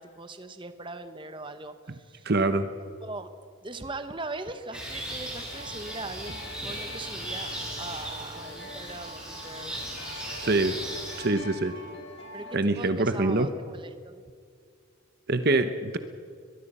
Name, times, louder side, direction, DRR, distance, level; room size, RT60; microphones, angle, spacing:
voice 1, 0.0-2.3 3.0-3.3 3.6-9.8 10.4-10.6 12.3-14.2, right 2 dB, 20° right, 9 dB, 1.1 m, -40 dB
voice 2, 2.2-2.7 10.4-10.8 11.2-11.7 12.5-13.5 15.3-16.0, right 2 dB, 45° right, 9 dB, 0.9 m, -24 dB
sound 1, 4.7-11.2, right 1 dB, 5° right, 5.2 m, -37 dB
sound 2, 5.5-12.6, left 1 dB, 55° left, 3.4 m, -44 dB
23.0 x 21.5 x 5.5 m, 2.2 s
head